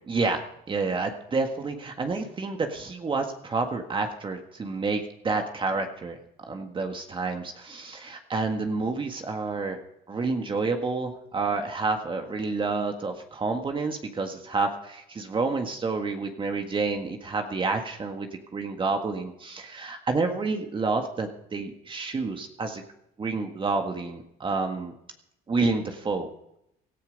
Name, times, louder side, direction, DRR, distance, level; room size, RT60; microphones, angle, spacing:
voice 1, 0.1-0.4 0.7-9.8 10.1-22.8 23.2-24.9 25.5-26.3, right 3 dB, 30° right, 4 dB, 1.7 m, -29 dB
17.5 x 14.0 x 5.3 m, 0.79 s
cardioid pair, 110°, 17 cm